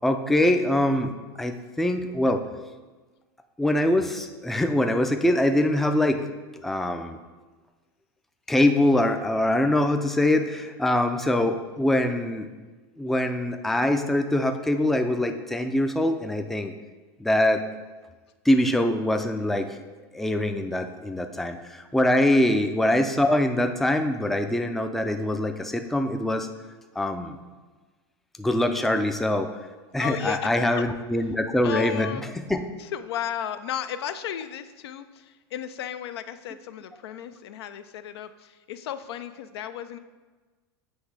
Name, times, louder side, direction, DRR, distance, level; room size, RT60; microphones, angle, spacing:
voice 1, 0.0-1.1 1.4-2.4 3.6-6.2 6.5-7.2 8.5-12.5 13.0-16.7 17.2-17.6 18.4-19.8 20.1-26.5 27.0-27.4 28.4-29.5 29.9-32.6, left 1 dB, ahead, 6 dB, 0.4 m, -23 dB
voice 2, 30.0-30.8 31.6-32.3 32.8-40.0, left 10 dB, 80° left, 11 dB, 0.4 m, -34 dB
7.9 x 3.2 x 4.7 m, 1.3 s
hypercardioid pair, 115°, 13 cm